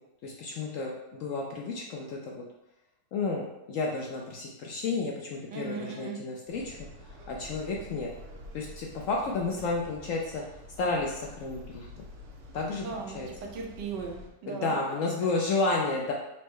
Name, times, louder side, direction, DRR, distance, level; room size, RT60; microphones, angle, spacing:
voice 1, 0.2-0.9 1.2-2.4 3.1-6.7 7.3-8.1 8.5-10.4 10.8-11.9 12.5-12.9 13.1-13.3 14.5-16.1, left 3 dB, 75° left, -1 dB, 0.7 m, -31 dB
voice 2, 5.5-6.2 12.7-14.7, right 4 dB, 90° right, 1 dB, 1.4 m, -38 dB
sound 1, 6.5-14.3, left 1 dB, 60° right, 0.8 m, -48 dB
4.3 x 2.1 x 4.6 m, 0.91 s
omnidirectional pair, 1.8 m